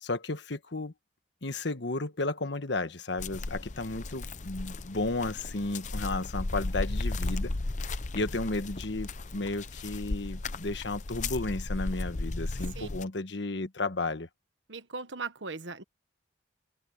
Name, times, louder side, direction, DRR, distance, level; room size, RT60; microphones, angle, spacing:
voice 1, 0.0-0.9 1.4-7.5 8.1-14.3, left 2 dB, 75° left, 1.3 m, -33 dB
sound 1, 3.2-13.0, left 2 dB, 40° left, 0.7 m, -35 dB
voice 2, 14.7-15.8, right 4 dB, 90° right, 1.5 m, -38 dB
head